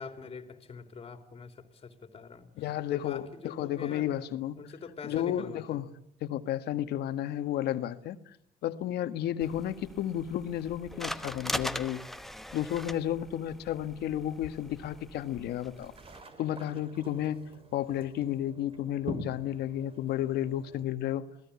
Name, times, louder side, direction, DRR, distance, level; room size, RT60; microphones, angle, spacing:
voice 1, 0.0-2.5 2.9-4.1 4.5-5.8, left 5 dB, 35° left, 7 dB, 3.3 m, -44 dB
voice 2, 2.6-4.6 5.0-5.8 6.2-8.4 8.6-12.0 12.5-15.9 16.4-17.4 17.7-21.3, left 11 dB, 75° left, 10 dB, 1.7 m, -32 dB
sound 1, 9.4-16.2, equal, ahead, 1.0 m, -41 dB
Paddle in Rowboat, 15.6-20.9, right 1 dB, 35° right, 3.4 m, -46 dB
28.0 x 18.5 x 8.5 m, 0.77 s
cardioid pair, 110°, 17 cm